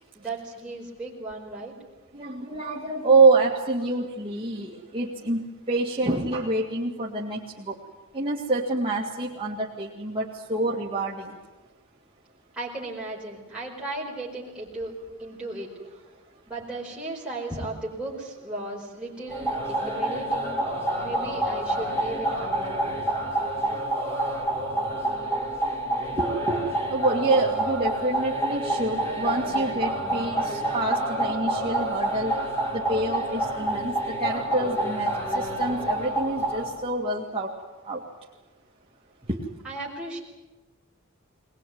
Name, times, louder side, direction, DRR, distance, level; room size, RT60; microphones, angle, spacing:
voice 1, 0.1-1.7 12.5-15.7 16.5-20.5 21.0-23.0 39.6-40.2, right 2 dB, 5° right, -6 dB, 4.7 m, -35 dB
voice 2, 2.1-7.7 8.1-11.3 26.2-26.6 26.9-32.3 32.7-33.9 34.2-37.5 37.8-38.0 39.3-39.4, right 2 dB, 25° right, -4 dB, 2.1 m, -26 dB
sound 1, 19.3-36.7, right 1 dB, 15° left, 5.6 m, -28 dB
21.0 x 20.5 x 9.4 m, 1.1 s
head